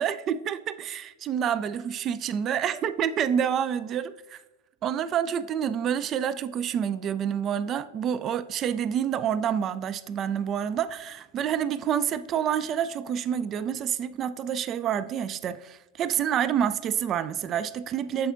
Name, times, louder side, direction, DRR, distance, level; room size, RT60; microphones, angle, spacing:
voice 1, 0.0-4.4 4.8-18.3, right 8 dB, 30° right, 14 dB, 0.3 m, -28 dB
8.9 x 6.9 x 2.5 m, 1.1 s
figure-of-eight pair, 90°, 0 cm